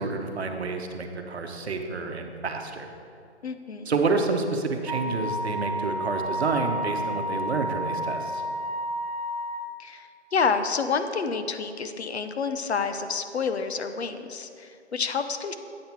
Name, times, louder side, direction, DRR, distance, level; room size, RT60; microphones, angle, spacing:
voice 1, 0.0-2.9 3.9-8.4, right 3 dB, 65° right, 5 dB, 1.0 m, -29 dB
voice 2, 3.4-3.9 9.8-15.5, left 5 dB, 70° left, 9 dB, 0.7 m, -29 dB
Wind instrument woodwind instrument, 4.9-9.7, equal, 40° right, 0.5 m, -31 dB
8.6 x 5.6 x 4.5 m, 2.4 s
hypercardioid pair, 170°, 35 cm